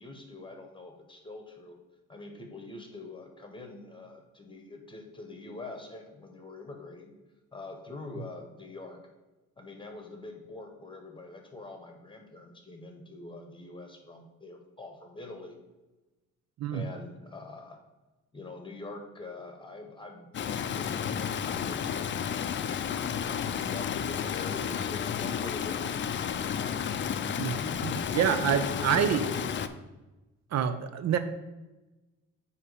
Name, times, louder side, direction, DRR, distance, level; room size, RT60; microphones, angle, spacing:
voice 1, 0.0-1.8 2.1-7.1 7.5-9.0 9.6-15.6 16.7-17.8 18.3-20.3 20.7-22.5 23.0-26.7 27.5-27.8 28.2-29.7, left 2 dB, 15° left, 4 dB, 1.2 m, -44 dB
Stream, 20.3-29.7, left 8 dB, 40° left, 0.4 m, -32 dB
voice 2, 27.8-29.2 30.5-31.2, right 8 dB, 60° right, 10 dB, 0.5 m, -27 dB
8.6 x 2.9 x 5.0 m, 1.1 s
cardioid pair, 90°, 30 cm